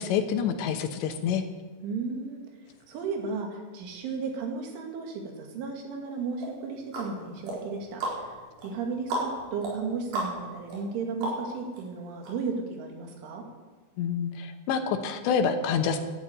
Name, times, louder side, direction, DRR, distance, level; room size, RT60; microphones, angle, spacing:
voice 1, 0.0-1.4 14.0-16.0, left 7 dB, 75° left, 7 dB, 3.2 m, -27 dB
voice 2, 1.8-2.4 2.9-8.3 8.6-13.4, right 4 dB, 90° right, 2 dB, 4.7 m, -34 dB
sound 1, 6.4-11.8 12.2-12.3, right 1 dB, 60° right, 6.5 m, -35 dB
12.5 x 11.0 x 9.2 m, 1.3 s
omnidirectional pair, 5.4 m